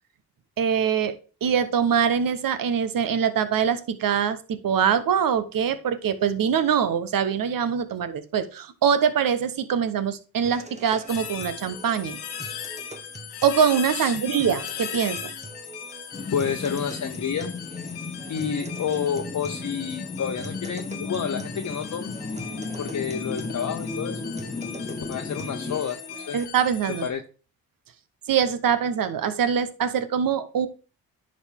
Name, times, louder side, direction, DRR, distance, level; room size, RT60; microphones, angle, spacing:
voice 1, 0.6-1.1 1.4-12.2 13.4-15.2 26.3-27.0 28.3-30.7, right 7 dB, 55° right, 1.1 m, -23 dB
sound 1, 10.4-26.5, right 2 dB, 15° right, 1.3 m, -44 dB
sound 2, 11.1-27.1, left 9 dB, 75° left, 1.3 m, -38 dB
voice 2, 13.9-14.4 16.3-17.5 18.3-22.1 22.8-24.2 24.9-26.0 26.3-26.4 27.0-27.2, left 7 dB, 45° left, 1.0 m, -29 dB
sound 3, 16.1-25.8, left 3 dB, 20° left, 0.9 m, -35 dB
10.0 x 5.3 x 3.6 m
supercardioid pair, 55°, 40 cm